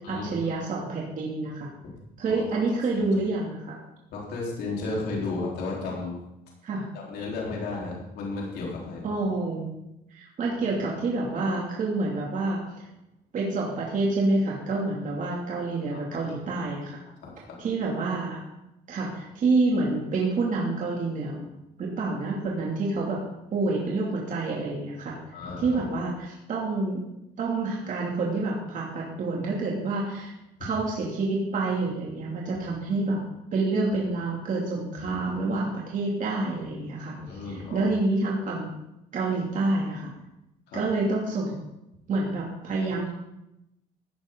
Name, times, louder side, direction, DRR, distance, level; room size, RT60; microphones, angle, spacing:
voice 1, 0.1-1.7 2.2-3.8 6.6-6.8 9.0-9.7 10.1-12.8 13.3-17.0 17.6-18.4 18.9-21.5 21.8-23.2 23.5-25.2 25.6-27.0 27.4-30.3 30.6-33.2 33.5-38.7 39.1-40.1 40.7-41.6 42.1-43.1, right 3 dB, 50° right, -3 dB, 2.7 m, -28 dB
voice 2, 2.3-2.6 2.9-3.1 4.1-6.2 6.9-9.1 15.9-16.3 17.2-17.6 25.3-25.8 30.6-30.7 35.0-35.2 37.2-37.9 40.7-40.8, left 3 dB, 75° left, -3 dB, 4.0 m, -34 dB
15.5 x 10.0 x 3.9 m, 0.89 s
cardioid pair, 110°, 17 cm